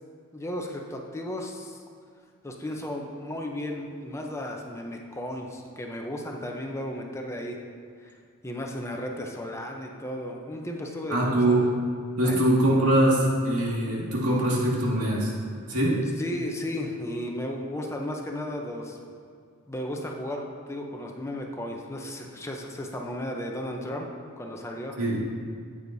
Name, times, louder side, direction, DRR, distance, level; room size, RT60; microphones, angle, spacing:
voice 1, 0.3-1.8 2.4-7.6 8.0-8.2 8.4-11.7 12.2-12.4 16.2-19.0 19.7-24.9, left 1 dB, 10° left, 1 dB, 0.7 m, -34 dB
voice 2, 11.1-11.6 12.2-15.3 15.7-16.0 25.0-25.2, right 1 dB, 80° right, -4 dB, 2.1 m, -23 dB
14.0 x 8.6 x 2.7 m, 2.1 s
head